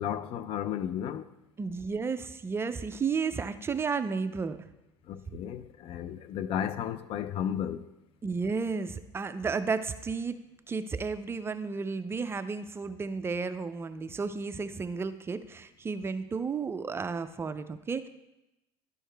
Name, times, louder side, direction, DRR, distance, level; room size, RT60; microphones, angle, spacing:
voice 1, 0.0-1.3 5.1-7.9, left 9 dB, 55° left, 0.4 m, -33 dB
voice 2, 1.6-4.7 8.2-10.4 10.7-18.1, right 5 dB, 20° right, 0.4 m, -33 dB
12.0 x 4.6 x 3.3 m
supercardioid pair, 105°, 11 cm